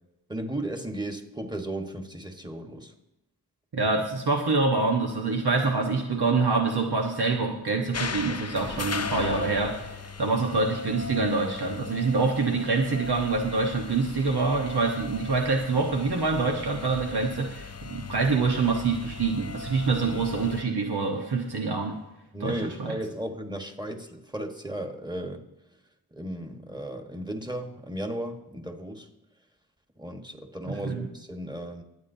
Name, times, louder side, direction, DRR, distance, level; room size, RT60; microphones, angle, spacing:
voice 1, 0.3-2.9 22.3-25.5 26.1-29.1 30.0-31.8, right 1 dB, 10° right, 4 dB, 1.3 m, -35 dB
voice 2, 3.7-9.9 10.2-22.0 22.4-23.0 30.6-31.1, right 3 dB, 85° right, 1 dB, 1.2 m, -26 dB
sound 1, 7.9-20.6, left 4 dB, 40° left, 0.6 m, -38 dB
22.0 x 8.6 x 2.7 m, 0.94 s
wide cardioid pair, 60°, 38 cm